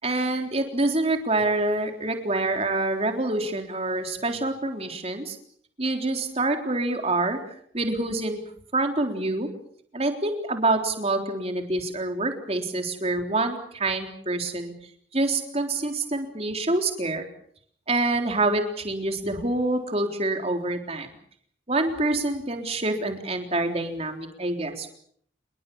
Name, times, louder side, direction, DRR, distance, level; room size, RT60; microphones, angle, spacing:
voice 1, 0.0-5.4 5.8-7.4 7.7-8.4 8.7-9.5 9.9-14.7 15.1-17.3 17.9-21.1 21.7-24.9, right 2 dB, 35° right, 5 dB, 3.8 m, -26 dB
28.0 x 21.5 x 7.1 m, 0.63 s
head